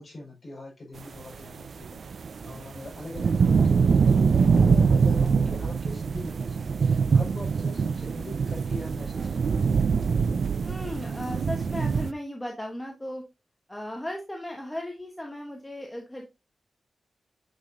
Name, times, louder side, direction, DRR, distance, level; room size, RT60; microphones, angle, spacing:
voice 1, 0.0-9.8, left 2 dB, 40° left, -4 dB, 5.1 m, -42 dB
sound 1, 1.6-12.1, right 5 dB, 65° right, 0.4 m, -23 dB
voice 2, 10.6-13.2 13.7-16.3, left 1 dB, 10° left, 1 dB, 1.2 m, -36 dB
8.9 x 5.7 x 2.7 m, 0.24 s
wide cardioid pair, 150°, 0 cm